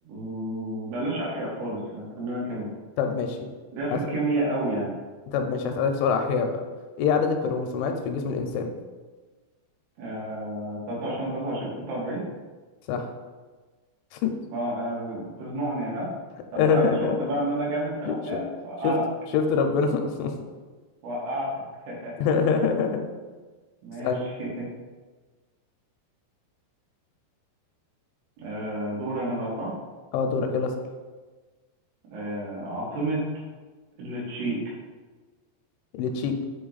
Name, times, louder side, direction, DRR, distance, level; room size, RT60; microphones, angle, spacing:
voice 1, 0.0-2.7 3.7-4.9 10.0-12.2 14.5-16.1 16.5-19.0 21.0-21.5 21.9-22.1 23.8-24.7 28.4-29.7 32.1-33.2 34.0-34.6, right 1 dB, 85° right, -5 dB, 4.3 m, -30 dB
voice 2, 3.0-3.4 3.9-4.0 5.3-6.5 7.0-8.7 12.9-13.1 14.1-14.3 16.6-17.3 18.1-18.4 18.8-18.9 19.3-20.3 22.2-23.0 24.0-24.2 30.1-30.7 36.0-36.3, left 5 dB, 85° left, 5 dB, 2.9 m, -25 dB
8.5 x 3.0 x 4.0 m, 1.3 s
omnidirectional pair, 5.5 m